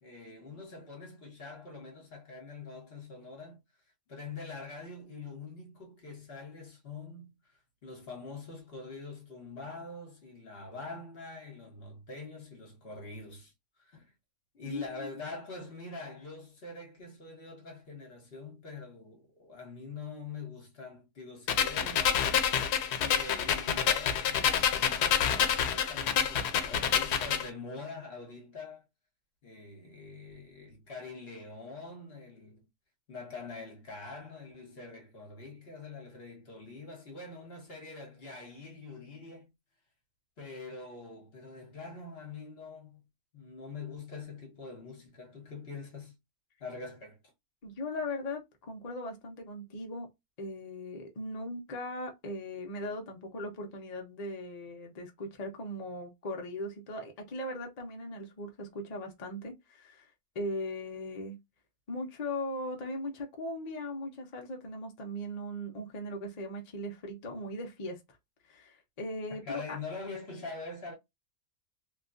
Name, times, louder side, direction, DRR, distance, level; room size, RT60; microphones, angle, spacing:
voice 1, 0.0-3.6 4.1-13.5 13.8-14.1 14.5-28.9 29.4-32.6 33.1-39.5 40.4-43.0 43.3-46.1 46.6-47.2 69.3-70.9, left 3 dB, 45° left, 1.1 m, -44 dB
voice 2, 14.7-15.1 47.6-50.1 50.4-60.1 60.3-61.4 61.9-68.0 68.5-69.8, left 1 dB, 60° left, 0.4 m, -39 dB
sound 1, 21.5-27.5, left 8 dB, 90° left, 1.1 m, -28 dB
3.1 x 2.2 x 2.4 m
omnidirectional pair, 1.6 m